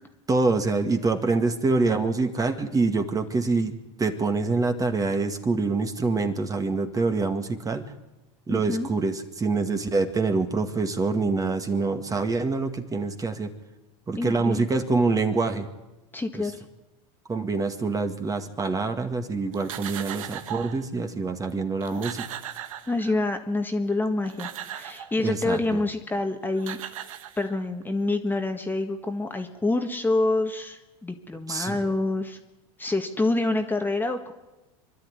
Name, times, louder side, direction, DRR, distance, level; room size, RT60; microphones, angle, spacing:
voice 1, 0.3-3.7 4.0-7.9 8.5-13.5 14.1-15.7 16.3-16.4 17.3-22.2 25.2-25.6 31.5-31.8, right 3 dB, 20° right, 6 dB, 2.0 m, -25 dB
voice 2, 8.5-8.9 14.1-14.6 16.1-16.5 22.9-26.8 27.4-32.4 32.8-34.3, left 2 dB, 10° left, 5 dB, 1.7 m, -27 dB
sound 1, 19.5-20.8 21.5-21.6 21.8-23.4 24.1-25.2 26.2-26.3 26.6-27.8, right 11 dB, 90° right, 1.2 m, -38 dB
25.5 x 12.0 x 9.7 m, 1.0 s
supercardioid pair, 110°, 17 cm